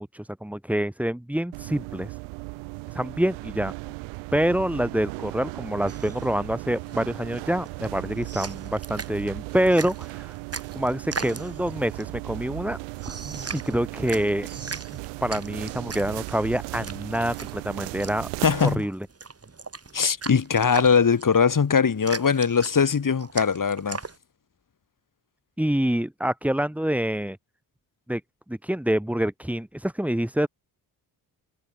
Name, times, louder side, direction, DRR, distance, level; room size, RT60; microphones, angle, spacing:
voice 1, 0.0-2.2 2.9-3.7 4.3-10.3 10.7-12.8 13.5-14.5 15.2-18.3 18.6-19.0 25.6-27.4 28.1-28.2 28.5-30.5, right 1 dB, 5° right, 1.3 m, -26 dB
sound 1, 1.5-18.8, right 29 dB, 90° right, 2.5 m, -37 dB
sound 2, 5.9-24.2, right 4 dB, 30° right, 2.7 m, -39 dB
voice 2, 18.4-18.9 19.9-24.0, left 6 dB, 40° left, 2.2 m, -21 dB
hypercardioid pair, 45°, 50 cm